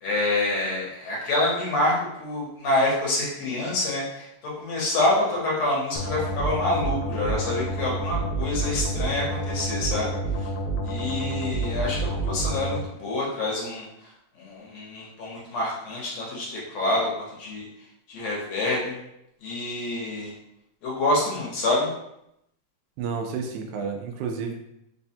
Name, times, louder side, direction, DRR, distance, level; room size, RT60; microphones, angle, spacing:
voice 1, 0.0-10.1 10.4-10.5 10.8-13.9 14.4-17.1 17.4-17.7 18.1-19.0 19.4-20.3 20.8-21.9, left 2 dB, 70° left, -4 dB, 1.9 m, -27 dB
sound 1, 6.0-12.8, right 2 dB, 85° left, 2.0 m, -28 dB
voice 2, 23.0-24.5, right 5 dB, 90° right, 4 dB, 2.0 m, -30 dB
4.9 x 2.2 x 2.7 m, 0.81 s
omnidirectional pair, 3.4 m